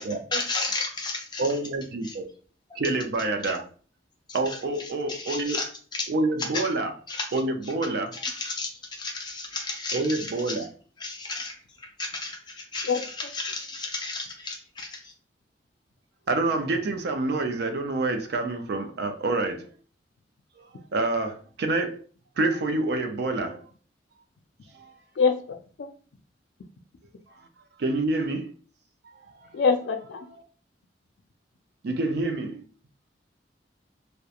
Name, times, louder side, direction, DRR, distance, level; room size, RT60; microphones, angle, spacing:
voice 1, 0.0-1.6 2.0-2.2 3.4-3.5 4.3-5.7 5.9-6.1 6.5-6.7 7.1-7.7 8.1-10.7 11.0-15.1, left 3 dB, 25° left, 0.6 m, -34 dB
voice 2, 1.4-2.3 2.8-3.6 4.3-5.6 6.1-6.9 7.3-8.1 9.9-10.6 16.3-19.7 20.6-20.7 20.9-22.0 22.4-23.7 24.7-24.9 27.8-28.5 29.1-29.6 30.3-30.4 31.8-32.6, right 2 dB, 65° right, 0.4 m, -27 dB
voice 3, 25.2-25.9 29.5-30.3, left 5 dB, 80° left, 0.4 m, -24 dB
2.8 x 2.1 x 2.3 m
head